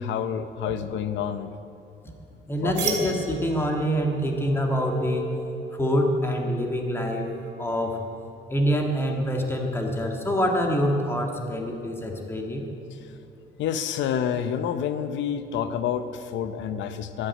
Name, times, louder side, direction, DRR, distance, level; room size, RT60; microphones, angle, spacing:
voice 1, 0.0-1.5 2.6-3.2 13.6-17.3, left 8 dB, 80° left, 10 dB, 0.8 m, -28 dB
voice 2, 2.5-5.3 5.8-7.3 7.6-8.0 8.5-12.6, equal, 10° left, 2 dB, 1.8 m, -25 dB
sound 1, 2.7-8.3, right 5 dB, 65° right, 2.6 m, -37 dB
11.5 x 11.0 x 9.3 m, 2.8 s
cardioid pair, 155°, 19 cm